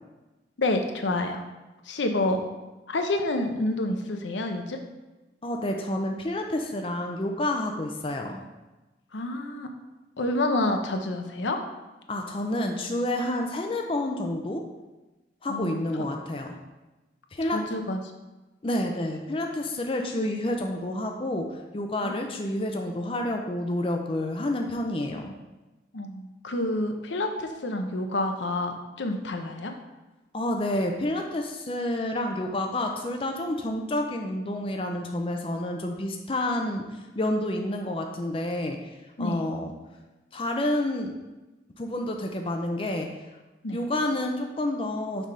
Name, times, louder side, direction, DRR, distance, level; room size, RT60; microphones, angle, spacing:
voice 1, 0.6-1.4 1.9-2.4 2.9-4.8 9.1-9.7 10.2-11.6 15.5-15.8 17.5-18.0 22.0-22.1 25.9-29.7 39.2-39.4 43.6-43.8, left 2 dB, 85° left, 5 dB, 0.7 m, -28 dB
voice 2, 5.4-8.4 12.1-14.6 15.4-16.6 17.3-17.7 18.6-25.3 30.3-39.7 40.3-41.1 41.8-43.1 43.7-45.3, left 1 dB, 30° left, 3 dB, 0.5 m, -29 dB
6.2 x 3.5 x 5.4 m, 1.1 s
head